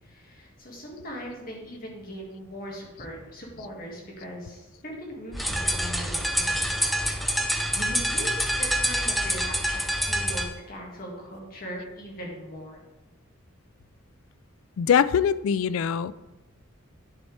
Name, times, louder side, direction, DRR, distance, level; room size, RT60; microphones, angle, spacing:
voice 1, 0.0-6.6 7.3-12.9, equal, 45° left, -1 dB, 2.0 m, -40 dB
sound 1, 5.3-10.5, equal, ahead, 0.4 m, -26 dB
voice 2, 14.8-16.1, left 7 dB, 80° left, 17 dB, 0.3 m, -22 dB
11.0 x 6.3 x 3.3 m, 1.1 s
head